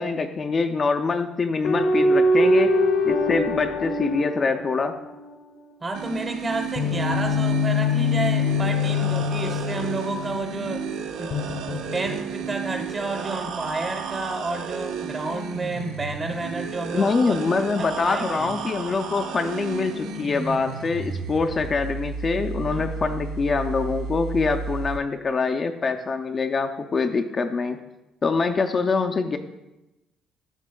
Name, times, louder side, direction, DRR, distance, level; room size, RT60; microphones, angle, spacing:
voice 1, 0.0-2.7 3.0-4.9 16.9-27.8 28.2-29.4, left 4 dB, 30° left, 5 dB, 0.4 m, -24 dB
sound 1, 1.6-5.3 6.8-10.5 11.3-12.5, left 2 dB, 55° left, 0.8 m, -23 dB
voice 2, 5.8-17.4 17.8-18.5 22.7-22.9, right 2 dB, 20° right, 5 dB, 0.9 m, -31 dB
sound 2, 5.9-25.0, right 6 dB, 75° right, 0.7 m, -33 dB
11.5 x 6.8 x 2.3 m, 0.98 s
cardioid pair, 145°, 0 cm